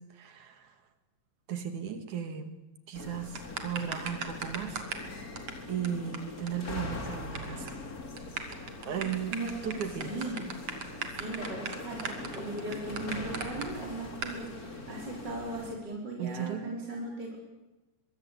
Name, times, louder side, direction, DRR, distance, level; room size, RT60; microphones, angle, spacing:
voice 1, 0.1-0.8 1.5-2.6 2.9-4.8 5.7-7.8 8.9-9.4 9.6-10.2 16.2-16.7, right 8 dB, 85° right, 8 dB, 3.7 m, -36 dB
sound 1, 2.9-15.8, left 2 dB, 30° left, 3.1 m, -42 dB
sound 2, 3.3-5.1 5.4-5.5 5.8-5.9 6.1-6.2 6.5-6.6 6.8-7.4 7.7-7.8 8.2-13.7 14.2-14.3, right 5 dB, 60° right, 3.6 m, -37 dB
voice 2, 9.8-10.8 11.1-17.4, right 2 dB, 35° right, -1 dB, 5.0 m, -38 dB
23.5 x 23.0 x 8.4 m, 1.1 s
omnidirectional pair, 3.3 m